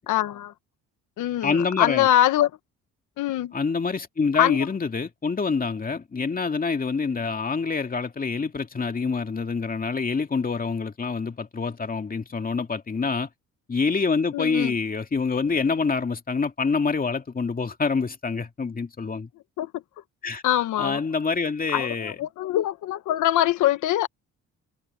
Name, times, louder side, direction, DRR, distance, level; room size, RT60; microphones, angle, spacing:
voice 1, 0.1-0.5 1.2-2.5 3.2-3.5 4.4-4.6 14.3-14.7 19.6-19.7 20.4-21.0 21.7-24.1, left 13 dB, 85° left, 1.2 m, -23 dB
voice 2, 1.4-2.1 3.5-13.3 13.7-19.3 20.2-20.4 20.8-22.2, left 4 dB, 30° left, 2.4 m, -26 dB
cardioid pair, 90°, 30 cm